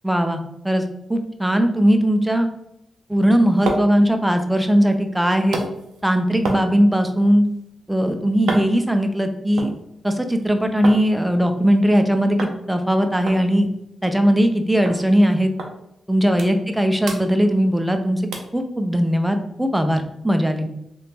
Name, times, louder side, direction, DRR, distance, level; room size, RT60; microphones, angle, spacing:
voice 1, 0.0-0.8 1.1-2.5 3.1-5.6 6.0-7.4 7.9-9.7 10.0-12.4 12.7-13.7 14.0-15.5 16.1-18.2 18.5-20.7, equal, 5° right, 6 dB, 0.5 m, -19 dB
sound 1, 3.4-11.0 11.3-12.0 12.4-12.6 12.9-13.0 13.3-14.6 14.9-15.0 15.6-15.7 16.1-16.8 17.0-17.9 18.3-18.6 19.1-19.2, right 2 dB, 80° right, 0.5 m, -32 dB
3.4 x 2.5 x 2.8 m, 0.80 s
supercardioid pair, 45°, 0 cm